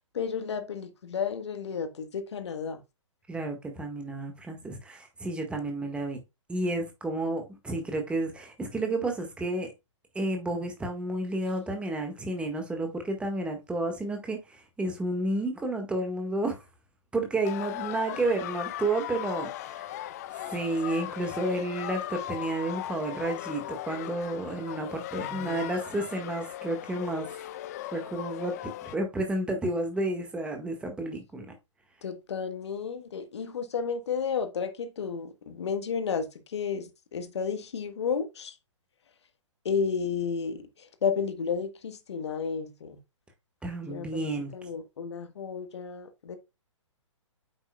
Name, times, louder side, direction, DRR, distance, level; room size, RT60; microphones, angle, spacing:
voice 1, 0.1-2.8 25.2-25.7 32.0-38.6 39.6-43.0 43.9-46.4, left 6 dB, 60° left, 1.5 m, -32 dB
voice 2, 3.3-6.2 6.5-9.7 10.1-16.6 17.1-19.9 20.4-27.3 27.9-31.5 43.6-44.5, right 2 dB, 5° right, 1.6 m, -31 dB
sound 1, 17.4-29.0, left 14 dB, 30° left, 0.4 m, -38 dB
8.9 x 6.2 x 2.3 m
figure-of-eight pair, 125°, 16 cm